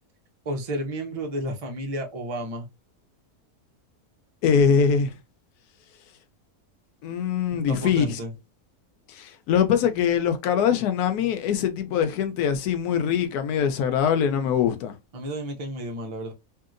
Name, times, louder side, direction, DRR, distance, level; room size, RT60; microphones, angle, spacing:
voice 1, 0.5-2.7 7.7-8.3 15.1-16.3, right 1 dB, 60° right, 0.3 m, -32 dB
voice 2, 4.4-5.2 7.0-8.2 9.1-15.0, left 7 dB, 80° left, 1.1 m, -23 dB
2.9 x 2.7 x 2.4 m
omnidirectional pair, 1.6 m